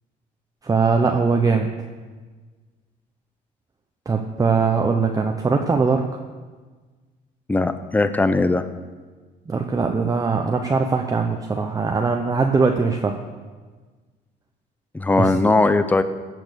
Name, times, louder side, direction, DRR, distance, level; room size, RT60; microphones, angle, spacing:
voice 1, 0.6-1.7 4.1-6.0 9.5-13.2 15.2-15.3, right 4 dB, 20° right, 3 dB, 0.8 m, -21 dB
voice 2, 7.5-8.7 14.9-16.0, left 3 dB, 10° left, 11 dB, 0.6 m, -19 dB
16.0 x 6.1 x 6.8 m, 1.4 s
cardioid pair, 110°, 17 cm